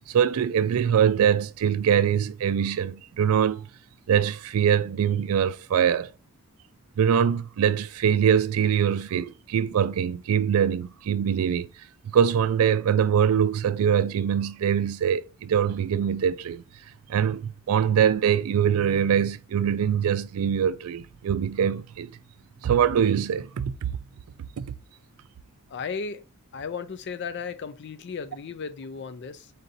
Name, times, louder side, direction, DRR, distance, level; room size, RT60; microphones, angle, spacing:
voice 1, 0.1-3.7 4.1-6.1 7.0-11.7 12.0-16.6 17.1-22.2 22.6-24.0 24.6-24.7, right 8 dB, 80° right, 0.3 m, -23 dB
voice 2, 25.7-26.2 26.5-29.5, left 5 dB, 50° left, 0.4 m, -35 dB
3.8 x 2.6 x 4.0 m
head